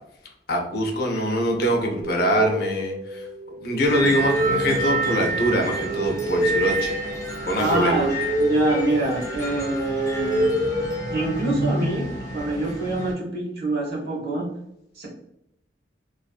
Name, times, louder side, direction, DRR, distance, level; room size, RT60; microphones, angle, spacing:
voice 1, 0.5-3.2 3.6-7.0 7.5-8.0, equal, 60° left, 2 dB, 0.5 m, -24 dB
sound 1, 2.0-11.7, equal, 35° right, 0.4 m, -28 dB
sound 2, 3.8-13.1, right 2 dB, 15° left, 0.6 m, -29 dB
voice 2, 7.6-10.5 11.1-12.1 12.3-14.5 15.0-15.1, right 2 dB, 60° right, -3 dB, 0.9 m, -25 dB
2.5 x 2.4 x 2.3 m, 0.77 s
head